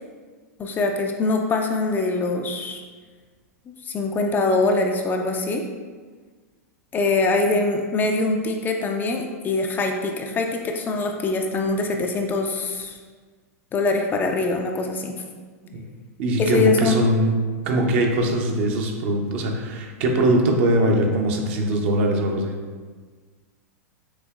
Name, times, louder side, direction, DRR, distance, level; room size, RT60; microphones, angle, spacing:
voice 1, 0.6-2.8 3.8-5.6 6.9-13.0 13.7-15.1 16.4-17.0, left 3 dB, 25° left, 3 dB, 0.4 m, -23 dB
voice 2, 16.2-17.3 17.6-22.5, right 1 dB, 50° right, 2 dB, 0.7 m, -21 dB
6.2 x 2.8 x 2.3 m, 1.5 s
figure-of-eight pair, 95°, 8 cm